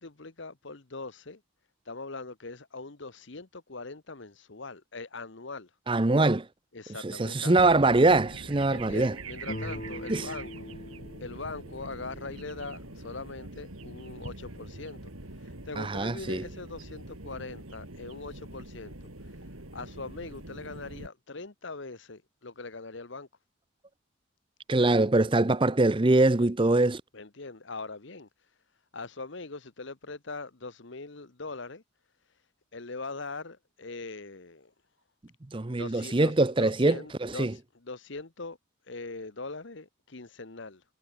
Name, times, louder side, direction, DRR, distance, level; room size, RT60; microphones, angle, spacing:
voice 1, 0.0-1.4 1.8-5.7 6.7-7.5 8.7-10.8 11.2-15.0 15.4-19.1 19.7-23.3 27.1-28.3 28.9-31.8 32.7-34.7 35.7-36.3 36.6-38.6 38.9-40.8, left 3 dB, 60° left, 1.2 m, -41 dB
voice 2, 5.9-6.5 7.0-9.1 10.1-10.3 15.8-16.4 24.7-27.0 35.5-37.5, right 2 dB, 25° right, 0.6 m, -23 dB
sound 1, 7.6-21.1, right 2 dB, 80° right, 4.1 m, -44 dB
sound 2, 9.4-13.1, left 1 dB, 40° left, 1.9 m, -42 dB
head